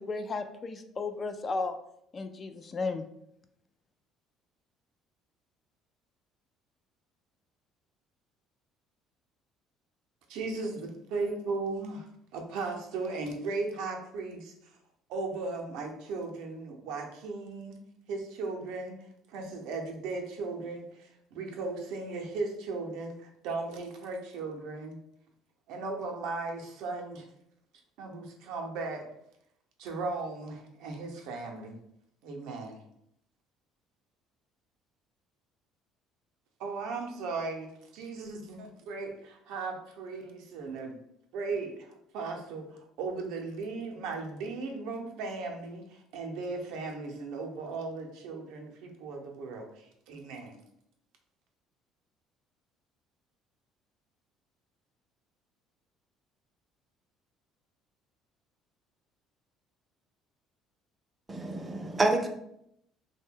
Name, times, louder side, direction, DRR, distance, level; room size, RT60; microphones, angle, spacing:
voice 1, 0.0-1.8 2.1-3.0, left 3 dB, 35° left, 7 dB, 0.3 m, -34 dB
voice 2, 10.3-12.1 12.3-14.7 15.1-17.8 18.1-19.0 19.3-25.0 25.7-27.3 28.0-29.1 29.8-31.8 32.2-32.8 36.6-41.0 41.3-50.6, right 3 dB, 80° right, 2 dB, 0.5 m, -37 dB
voice 3, 61.3-62.3, right 2 dB, 25° right, 5 dB, 0.5 m, -28 dB
2.6 x 2.2 x 3.5 m, 0.75 s
supercardioid pair, 80°, 0 cm